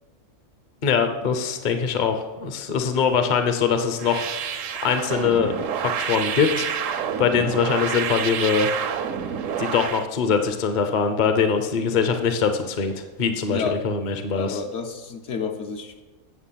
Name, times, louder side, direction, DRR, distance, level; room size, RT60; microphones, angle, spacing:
voice 1, 0.8-8.7 9.6-14.6, left 6 dB, 45° left, 7 dB, 0.8 m, -23 dB
sound 1, 4.0-10.1, right 8 dB, 80° right, 1.0 m, -28 dB
voice 2, 13.5-13.8 14.3-16.0, left 5 dB, 65° left, 5 dB, 1.1 m, -30 dB
8.3 x 7.0 x 5.7 m, 1.2 s
omnidirectional pair, 1.3 m